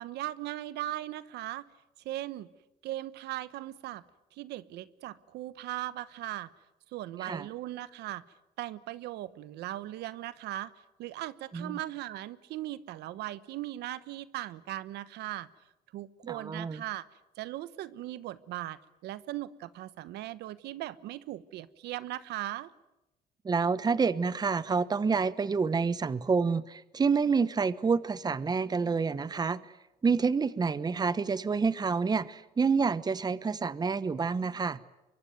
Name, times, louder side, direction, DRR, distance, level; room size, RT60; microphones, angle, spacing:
voice 1, 0.0-1.7 2.0-2.5 2.8-4.0 4.3-6.5 6.9-8.2 8.6-10.7 11.0-15.5 15.9-17.1 17.4-22.7, right 14 dB, 80° right, 16 dB, 1.1 m, -38 dB
voice 2, 16.2-16.8 23.4-29.6 30.0-34.8, right 5 dB, 25° right, 16 dB, 1.0 m, -28 dB
24.0 x 23.0 x 9.3 m, 0.97 s
cardioid pair, 110°, 17 cm